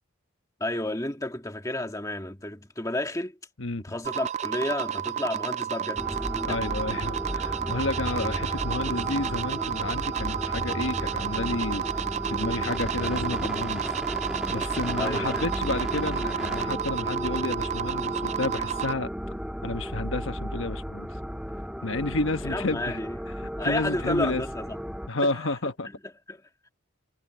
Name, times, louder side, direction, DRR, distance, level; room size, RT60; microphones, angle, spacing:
voice 1, 0.6-3.4 3.8-6.2 6.5-6.6 15.0-15.4 22.4-23.2 23.6-24.8 25.2-25.5 26.3-26.4, left 1 dB, 15° left, 1.9 m, -31 dB
sound 1, 4.0-18.9, right 9 dB, 30° right, 0.3 m, -31 dB
sound 2, 6.0-25.1, equal, 5° right, 1.5 m, -34 dB
voice 2, 6.4-13.9 14.5-19.1 19.6-21.1 21.8-23.0 23.4-24.4 25.1-25.9, left 2 dB, 65° left, 1.3 m, -31 dB
head